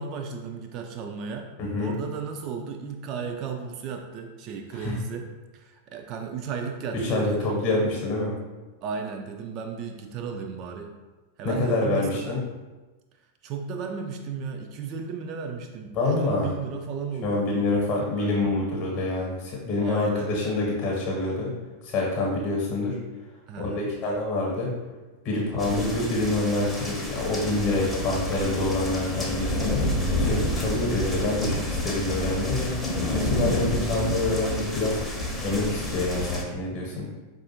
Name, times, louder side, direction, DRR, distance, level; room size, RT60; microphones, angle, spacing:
voice 1, 0.0-1.5 1.8-5.3 5.5-7.6 8.8-10.9 11.4-12.4 13.4-17.7 18.1-18.5 19.8-20.3 23.5-23.9, right 5 dB, 40° right, 4 dB, 0.3 m, -34 dB
voice 2, 1.6-1.9 4.7-4.9 6.9-8.4 11.4-12.4 15.9-16.5 17.2-21.5 21.8-23.0 23.6-24.7 25.2-29.9 30.2-32.8 33.1-35.0 35.4-37.1, left 2 dB, 35° left, -2 dB, 0.9 m, -26 dB
sound 1, 25.6-36.4, left 1 dB, 5° left, 0.7 m, -29 dB
4.7 x 2.4 x 2.8 m, 1.2 s
figure-of-eight pair, 90°, 0 cm